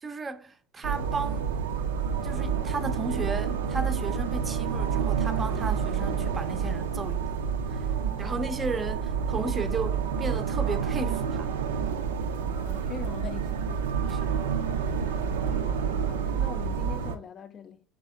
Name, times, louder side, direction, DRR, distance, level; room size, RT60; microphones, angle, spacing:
voice 1, 0.0-1.5 2.2-7.4 7.7-7.9 8.2-11.5 14.1-14.4, right 3 dB, 25° right, 0.5 m, -34 dB
sound 1, 0.8-17.2, right 6 dB, 85° right, 0.4 m, -29 dB
voice 2, 8.1-8.6 12.4-13.9 15.1-15.2 15.5-15.7 16.0-17.8, left 6 dB, 40° left, 0.4 m, -43 dB
3.4 x 3.3 x 3.6 m
hypercardioid pair, 75°, 0 cm